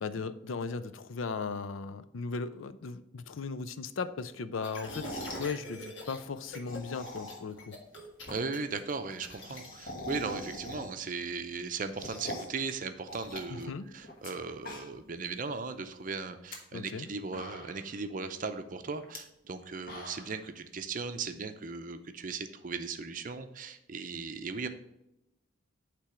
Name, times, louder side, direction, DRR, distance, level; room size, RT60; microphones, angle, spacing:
voice 1, 0.0-7.7 13.5-13.9 16.7-17.1, left 4 dB, 85° left, 12 dB, 0.5 m, -37 dB
sound 1, 4.6-6.2 6.5-6.8 7.1-9.7, left 2 dB, 65° left, 1.6 m, -44 dB
sound 2, 4.7-5.5 6.5-7.6 7.9-8.0 8.3-8.4 8.6-8.7 8.9-11.1 11.5-12.6 13.1-14.3 14.6-15.2 15.5-15.6 16.3-16.6 17.0-17.1 17.3-17.9 19.0-19.2 19.6-20.4, left 1 dB, 50° left, 1.3 m, -42 dB
voice 2, 8.3-24.7, right 4 dB, 45° right, 9 dB, 0.6 m, -37 dB
8.6 x 3.4 x 5.0 m, 0.87 s
head